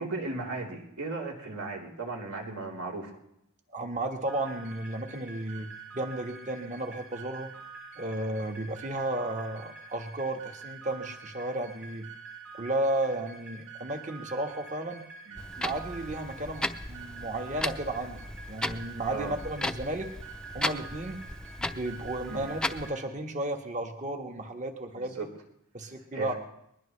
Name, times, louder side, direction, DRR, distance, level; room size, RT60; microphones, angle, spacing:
voice 1, 0.0-3.2 15.3-15.4 19.1-19.3 22.3-22.5 24.9-25.3 26.1-26.4, right 3 dB, 80° right, -1 dB, 3.7 m, -36 dB
voice 2, 3.7-5.7 5.9-7.5 8.0-12.1 12.6-15.0 15.6-20.1 20.5-21.2 21.6-25.2 25.7-26.3, right 1 dB, 35° right, 4 dB, 1.4 m, -33 dB
sound 1, 4.3-23.1, right 4 dB, 60° right, 5.2 m, -47 dB
Clock, 15.4-22.9, left 1 dB, 5° left, 0.6 m, -36 dB
21.0 x 21.0 x 3.3 m, 0.79 s
head